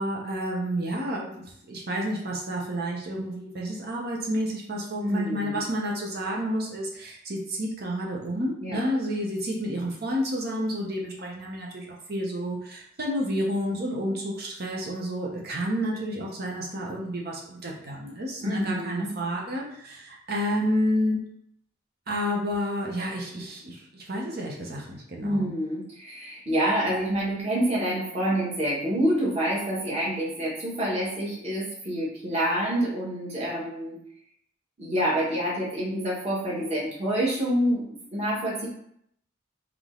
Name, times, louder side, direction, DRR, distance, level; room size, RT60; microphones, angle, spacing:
voice 1, 0.0-21.2 22.1-25.5, equal, 50° right, -2 dB, 0.9 m, -30 dB
voice 2, 5.0-5.6 8.6-8.8 18.4-19.1 25.2-34.0 34.8-38.7, equal, 30° right, -7 dB, 1.3 m, -27 dB
3.7 x 3.0 x 3.8 m, 0.72 s
head